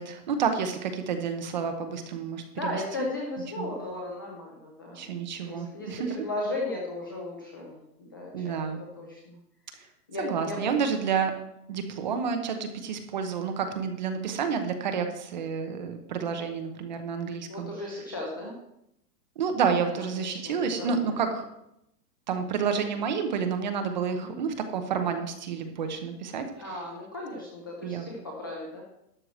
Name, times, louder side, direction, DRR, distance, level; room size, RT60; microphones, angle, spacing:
voice 1, 0.0-3.1 3.6-3.7 4.9-6.1 8.3-8.8 9.8-9.9 10.2-11.4 11.7-17.7 19.4-21.5 22.3-26.8 27.8-28.1, right 6 dB, 30° right, 6 dB, 0.8 m, -30 dB
voice 2, 2.5-5.1 5.4-8.6 9.0-9.4 10.1-10.6 12.0-12.2 17.5-18.6 19.7-19.9 20.1-21.2 24.1-24.3 26.6-28.8, left 2 dB, 15° left, -2 dB, 0.6 m, -36 dB
12.5 x 4.7 x 7.7 m, 0.80 s
hypercardioid pair, 175°, 49 cm